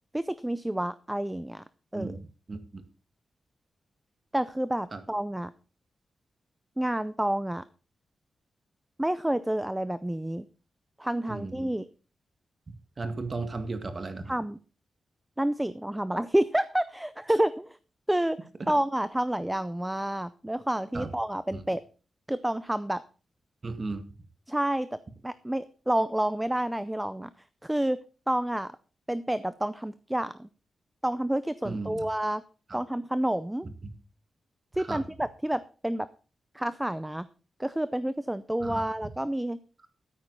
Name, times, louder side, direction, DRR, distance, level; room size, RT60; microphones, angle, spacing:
voice 1, 0.1-1.6 1.9-2.2 4.3-5.5 6.8-7.6 9.0-10.5 11.0-11.9 14.3-14.6 15.4-17.8 18.1-18.4 18.7-21.8 22.3-23.0 24.5-25.0 25.2-27.3 27.6-28.0 28.3-28.7 29.1-30.5 31.0-32.4 32.7-33.7 34.7-36.1 36.5-37.3 37.6-39.6, right 1 dB, 5° right, 15 dB, 0.5 m, -29 dB
voice 2, 1.9-2.8 4.9-5.0 11.3-11.7 13.0-14.3 20.9-21.1 21.5-21.6 23.6-24.0 31.6-32.0 32.7-32.8 33.8-33.9 34.9-35.0 38.6-38.8, right 3 dB, 35° right, 8 dB, 1.9 m, -35 dB
13.0 x 9.7 x 4.0 m, 0.36 s
wide cardioid pair, 110°, 0 cm